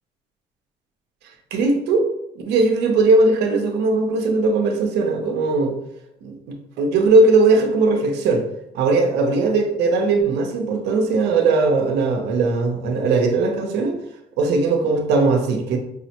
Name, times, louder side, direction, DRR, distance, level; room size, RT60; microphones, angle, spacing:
voice 1, 1.5-2.1 2.5-5.8 6.2-6.4 6.8-8.4 8.7-14.0 14.4-15.8, right 3 dB, 80° right, 4 dB, 0.6 m, -19 dB
4.8 x 2.0 x 2.8 m, 0.84 s
cardioid pair, 110°, 17 cm